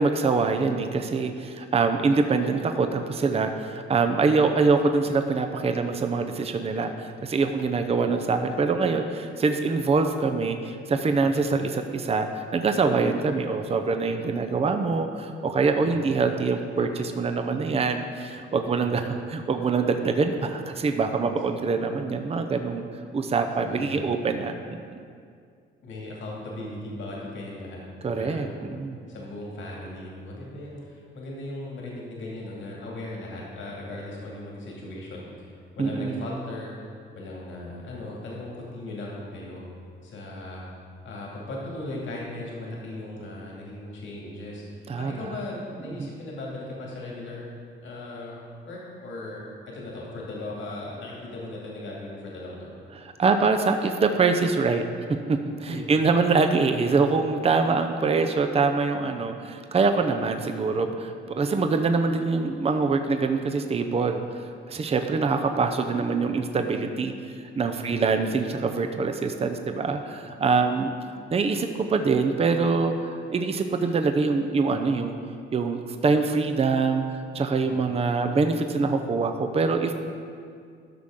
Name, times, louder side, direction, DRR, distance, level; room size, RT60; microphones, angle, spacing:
voice 1, 0.0-22.8 23.1-25.0 28.0-29.0 35.8-36.3 44.9-45.2 46.0-46.1 53.0-54.8 55.3-67.1 67.6-70.9 71.3-75.2 75.5-79.9, right 4 dB, 30° right, 6 dB, 0.6 m, -24 dB
voice 2, 15.7-16.1 18.6-18.9 23.6-24.2 25.8-27.8 28.2-28.6 29.1-36.7 37.1-39.6 40.0-40.7 41.0-47.5 47.8-52.7 55.6-55.9 67.8-68.1 77.6-77.9, left 2 dB, 75° left, -3 dB, 2.2 m, -38 dB
13.0 x 6.2 x 3.7 m, 2.2 s
cardioid pair, 90°, 20 cm